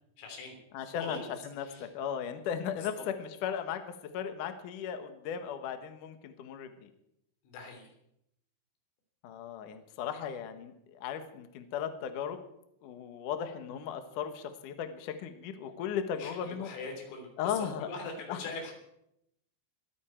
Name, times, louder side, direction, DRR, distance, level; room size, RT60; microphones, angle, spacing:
voice 1, 0.2-1.9 2.8-3.0 7.4-7.9 16.2-18.7, left 3 dB, 85° left, 3 dB, 5.9 m, -42 dB
voice 2, 0.7-6.9 9.2-12.4 12.8-16.7 17.4-17.9 18.3-18.4, left 8 dB, 70° left, 8 dB, 2.0 m, -36 dB
21.5 x 14.0 x 4.5 m, 0.80 s
omnidirectional pair, 5.6 m